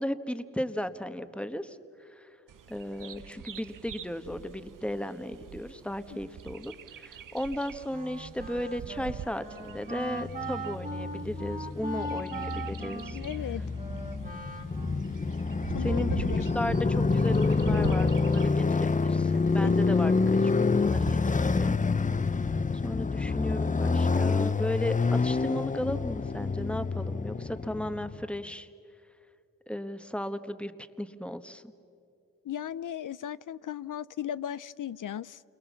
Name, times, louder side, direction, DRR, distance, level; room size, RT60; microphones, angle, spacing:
voice 1, 0.0-2.3 2.7-13.2 15.8-16.1 16.5-21.8 22.8-28.7 29.7-30.7 31.0-31.6, equal, 5° left, 10 dB, 1.2 m, -35 dB
Bird vocalization bird call bird song, 2.5-21.9, right 8 dB, 75° right, 0.7 m, -43 dB
Wind instrument woodwind instrument, 7.9-15.2, right 1 dB, 25° right, 2.2 m, -40 dB
Motorcycle, 10.1-28.2, left 4 dB, 25° left, 0.6 m, -27 dB
voice 2, 13.1-13.6 15.7-16.5 19.6-19.8 32.4-35.4, left 10 dB, 70° left, 18 dB, 0.5 m, -36 dB
29.0 x 23.0 x 7.2 m, 2.5 s
cardioid pair, 50°, 32 cm